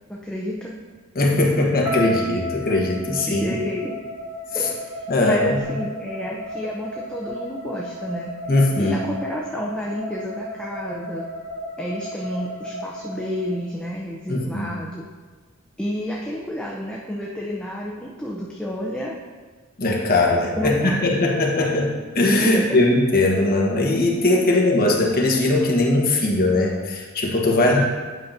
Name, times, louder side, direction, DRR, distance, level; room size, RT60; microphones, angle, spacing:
voice 1, 0.1-0.7 3.3-4.0 4.5-8.3 8.8-11.3 11.8-15.0 15.8-19.1 20.6-21.3 22.5-22.6 27.6-27.8, equal, 5° left, -4 dB, 0.5 m, -30 dB
voice 2, 1.1-3.4 4.5-4.7 5.1-5.8 8.5-9.0 14.3-14.7 19.8-21.9 22.1-27.8, left 2 dB, 45° left, -1 dB, 1.1 m, -20 dB
sound 1, 1.8-14.0, left 1 dB, 15° right, 1.8 m, -33 dB
9.4 x 5.7 x 2.6 m, 1.4 s
head